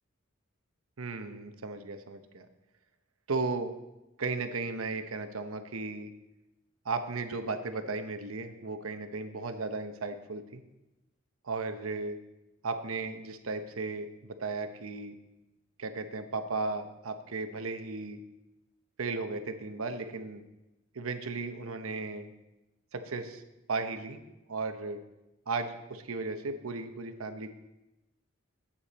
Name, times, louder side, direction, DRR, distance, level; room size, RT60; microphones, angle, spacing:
voice 1, 1.0-2.5 3.3-3.7 4.2-6.1 6.8-10.6 11.4-12.2 12.6-15.1 15.8-18.2 19.0-20.4 20.9-22.3 22.9-23.4 23.7-24.2 24.5-25.0 25.5-27.5, right 3 dB, 85° right, 8 dB, 0.9 m, -35 dB
9.9 x 8.6 x 4.2 m, 0.98 s
head